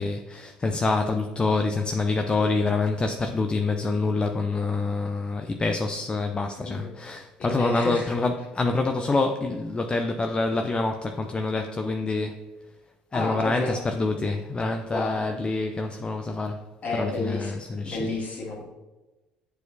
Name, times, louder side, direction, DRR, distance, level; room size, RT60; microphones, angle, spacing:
voice 1, 0.0-12.4 13.1-16.6 17.0-18.0, left 3 dB, 25° left, 0.5 m, -26 dB
voice 2, 6.6-6.9 7.4-8.1 13.1-13.8 14.9-15.2 16.8-18.6, left 2 dB, 40° left, 2.0 m, -31 dB
7.9 x 4.5 x 2.7 m
hypercardioid pair, 55°, 4 cm